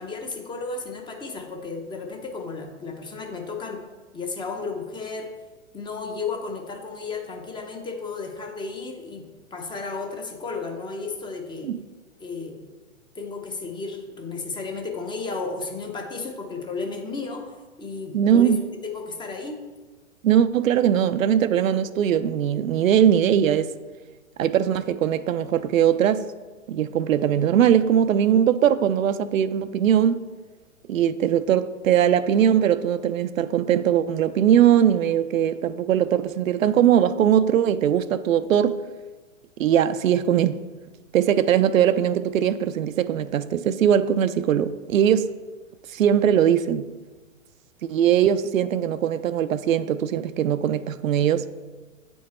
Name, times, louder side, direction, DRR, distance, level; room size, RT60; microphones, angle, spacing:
voice 1, 0.0-3.8 4.1-5.3 5.7-11.7 12.2-12.6 13.1-18.5 18.8-19.6, left 4 dB, 10° left, 0.6 m, -33 dB
voice 2, 18.1-18.6 20.2-23.7 24.4-26.2 26.7-30.3 30.9-38.8 39.6-40.6 41.1-45.3 45.9-46.9 47.8-51.5, right 9 dB, 85° right, 0.5 m, -20 dB
8.3 x 4.5 x 4.2 m
hypercardioid pair, 120°, 39 cm